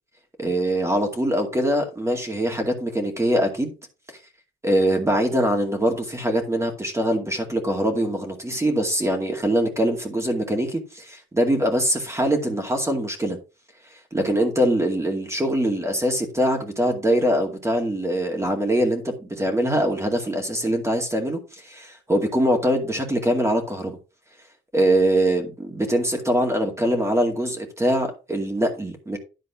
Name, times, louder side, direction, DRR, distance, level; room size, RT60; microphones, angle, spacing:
voice 1, 0.4-3.8 4.6-13.4 14.1-24.0 24.7-29.2, equal, 15° right, 2.3 m, -23 dB
11.0 x 4.1 x 5.8 m
cardioid pair, 90°, 20 cm